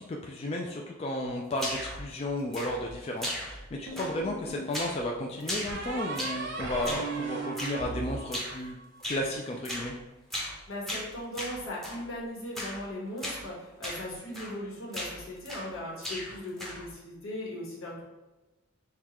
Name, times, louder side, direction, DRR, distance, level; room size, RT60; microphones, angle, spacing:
voice 1, 0.0-8.8 9.1-9.9, left 1 dB, 30° left, 0 dB, 0.3 m, -33 dB
sound 1, 1.6-2.0 2.5-2.9 3.2-3.7 4.0-4.3 4.7-5.0 5.4-6.5 6.8-7.1 7.6-7.8 8.3-8.6 9.0-9.3 9.6-9.9 10.3-10.6 10.9-12.0 12.5-12.8 13.2-13.4 13.8-14.0 14.3-14.6 14.9-15.7 16.0-16.9, equal, ahead, 0.7 m, -37 dB
sound 2, 3.9-4.7 5.7-9.0, right 3 dB, 60° right, 0.7 m, -37 dB
voice 2, 10.7-18.0, left 1 dB, 75° left, -5 dB, 1.4 m, -38 dB
6.5 x 2.3 x 2.9 m, 1.1 s
head